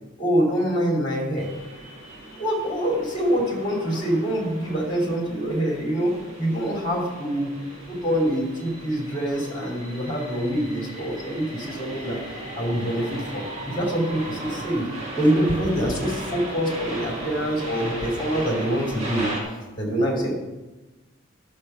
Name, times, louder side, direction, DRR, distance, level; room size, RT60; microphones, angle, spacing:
voice 1, 0.2-1.5 2.3-12.2 12.5-14.9 15.1-19.3 19.8-20.4, equal, 25° left, -1 dB, 2.6 m, -25 dB
sound 1, 1.4-19.4, right 1 dB, 35° right, 2.3 m, -37 dB
10.5 x 6.6 x 5.5 m, 1.1 s
head